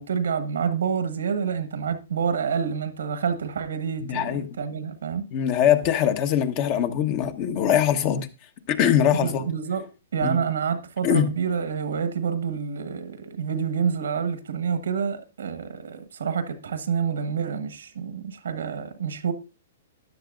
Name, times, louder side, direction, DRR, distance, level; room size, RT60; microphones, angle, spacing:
voice 1, 0.0-5.3 9.2-19.3, right 6 dB, 80° right, 1.3 m, -28 dB
voice 2, 4.1-4.5 5.3-8.3 8.7-9.4 10.2-10.4 11.0-11.3, left 9 dB, 40° left, 1.1 m, -22 dB
13.5 x 10.0 x 2.5 m
hypercardioid pair, 125°, 0 cm